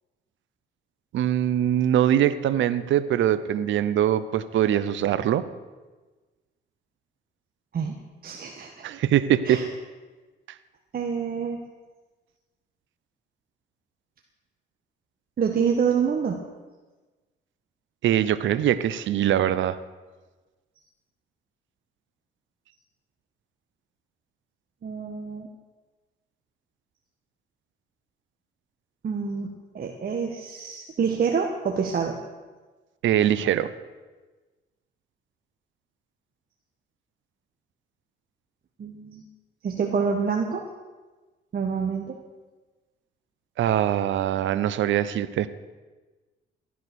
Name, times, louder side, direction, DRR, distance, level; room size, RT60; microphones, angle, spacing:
voice 1, 1.1-5.4 8.8-9.6 18.0-19.8 33.0-33.7 43.6-45.5, right 11 dB, 75° right, 14 dB, 0.8 m, -22 dB
voice 2, 8.2-8.9 9.4-9.7 10.9-11.6 15.4-16.4 24.8-25.5 29.0-32.2 38.8-39.2 39.6-40.6 41.5-42.2, right 6 dB, 50° right, 2 dB, 1.5 m, -27 dB
14.5 x 11.0 x 6.2 m, 1.3 s
cardioid pair, 90°, 20 cm